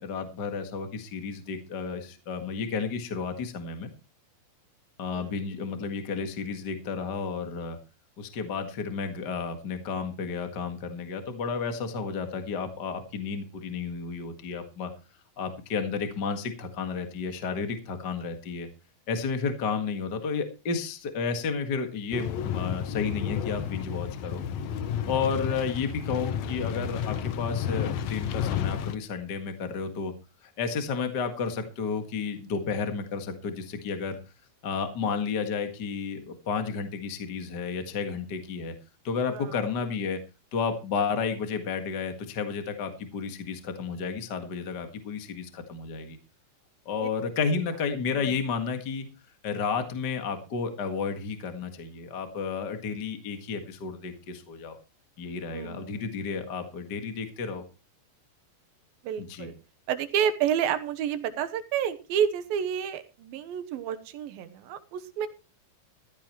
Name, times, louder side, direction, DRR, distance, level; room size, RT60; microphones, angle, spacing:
voice 1, 0.0-3.9 5.0-7.8 8.2-14.9 15.4-18.7 19.1-24.4 25.1-30.1 30.6-34.2 34.6-38.7 39.0-40.2 40.5-46.2 46.9-49.1 49.4-54.8 55.2-57.6 59.2-59.5, left 5 dB, 40° left, 6 dB, 1.8 m, -32 dB
sound 1, 22.1-29.0, left 8 dB, 65° left, 1.8 m, -31 dB
voice 2, 55.5-56.2 59.0-59.5 59.9-65.3, right 9 dB, 85° right, 11 dB, 2.9 m, -30 dB
15.0 x 14.5 x 3.1 m, 0.31 s
omnidirectional pair, 4.1 m